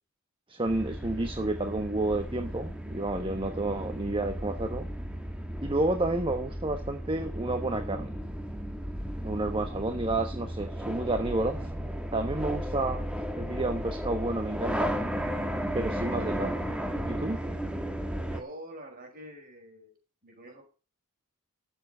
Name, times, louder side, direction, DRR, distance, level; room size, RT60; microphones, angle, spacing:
voice 1, 0.5-4.9 5.6-8.1 9.2-11.6 12.1-13.0 13.4-14.9 15.7-16.6 17.0-17.4, right 2 dB, 25° right, 6 dB, 1.1 m, -30 dB
sound 1, 0.7-18.4, equal, 5° right, 1.6 m, -34 dB
voice 2, 18.3-20.0 20.2-20.6, right 1 dB, 40° right, 3 dB, 5.5 m, -46 dB
13.0 x 7.4 x 6.7 m, 0.35 s
head